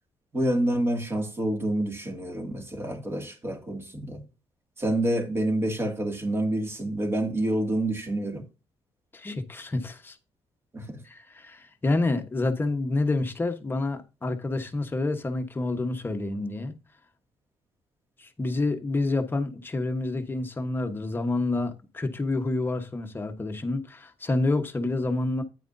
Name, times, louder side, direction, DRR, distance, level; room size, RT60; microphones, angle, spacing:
voice 1, 0.3-4.2 4.8-8.4 10.7-11.0, right 1 dB, 25° right, 2.2 m, -28 dB
voice 2, 9.1-10.2 11.0-16.7 18.2-25.4, left 2 dB, 20° left, 1.1 m, -28 dB
9.4 x 9.1 x 2.6 m
cardioid pair, 145°, 10 cm